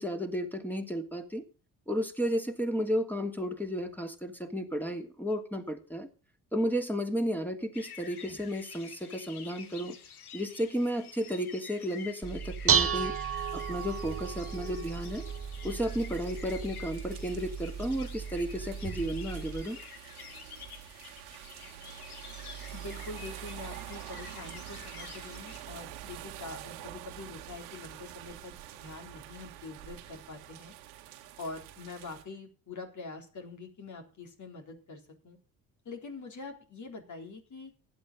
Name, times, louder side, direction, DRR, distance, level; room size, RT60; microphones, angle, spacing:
voice 1, 0.0-1.4 1.9-6.1 6.5-10.0 10.3-13.1 13.5-15.2 15.6-19.8, equal, 5° left, 4 dB, 2.8 m, -33 dB
sound 1, 7.7-25.6, left 7 dB, 85° left, 1.3 m, -49 dB
Dishes pots and pans, 12.2-19.6, right 7 dB, 30° right, 1.1 m, -33 dB
sound 2, 13.4-32.2, right 13 dB, 70° right, 1.9 m, -47 dB
voice 2, 22.7-28.5 28.8-30.7 31.4-35.4 35.9-37.7, left 3 dB, 40° left, 3 dB, 3.9 m, -44 dB
16.0 x 10.5 x 3.9 m, 0.36 s
figure-of-eight pair, 45°, 43 cm